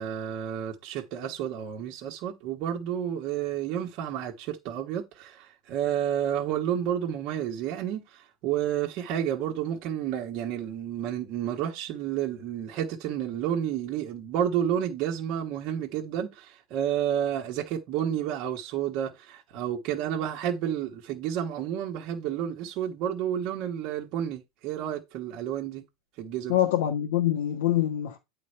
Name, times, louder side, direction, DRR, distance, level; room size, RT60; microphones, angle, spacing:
voice 1, 0.0-25.8 26.2-26.6, right 10 dB, 50° right, 1.2 m, -30 dB
voice 2, 26.5-28.2, left 12 dB, 75° left, 1.3 m, -25 dB
8.5 x 3.8 x 4.5 m
supercardioid pair, 125°, 0 cm